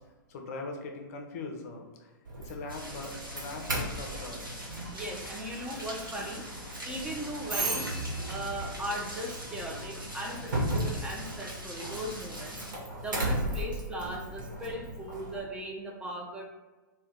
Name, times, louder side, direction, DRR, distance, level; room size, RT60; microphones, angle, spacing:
voice 1, 0.3-2.1 2.4-4.6, left 3 dB, 45° left, 3 dB, 0.5 m, -41 dB
Doorbell, 2.2-15.4, right 1 dB, 70° right, 1.0 m, -36 dB
sound 1, 2.7-12.7, equal, 90° right, 0.7 m, -44 dB
Engine starting, 3.9-12.0, right 1 dB, 35° right, 0.7 m, -55 dB
voice 2, 4.9-6.4 6.9-12.6 13.0-16.4, right 1 dB, 10° right, -2 dB, 0.3 m, -38 dB
2.6 x 2.1 x 3.5 m, 1.2 s
figure-of-eight pair, 105°, 11 cm